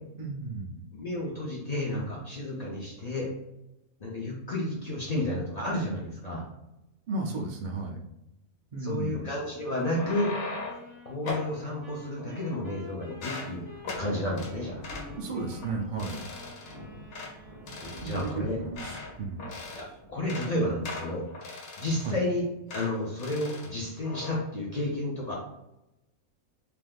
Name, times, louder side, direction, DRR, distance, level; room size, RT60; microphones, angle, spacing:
voice 1, 0.2-0.8 7.1-8.0 8.7-9.3 15.2-16.2 18.0-19.5 22.0-22.2, right 3 dB, 70° right, 0 dB, 0.4 m, -34 dB
voice 2, 0.9-3.3 4.0-6.4 8.8-10.3 11.1-13.6 14.0-14.8 17.8-18.6 19.7-21.2 21.8-22.5 22.7-25.4, left 1 dB, 60° left, -4 dB, 0.4 m, -31 dB
sound 1, 9.8-10.9 11.3-11.5 12.2-12.8 13.1-13.5 13.8-14.1 14.4-14.5 14.8-15.1 15.5-15.7 16.0-16.7 17.1-17.3 17.7-19.1 19.4-19.9 20.2-20.5 20.8-22.3 22.7-22.9 23.2-23.7 24.0-24.4, left 3 dB, 85° left, 1.2 m, -39 dB
sound 2, 9.8-18.2, left 1 dB, 15° right, 1.4 m, -49 dB
Thunder, 13.5-20.8, left 1 dB, 55° right, 1.5 m, -47 dB
3.5 x 2.7 x 2.3 m, 0.89 s
omnidirectional pair, 1.5 m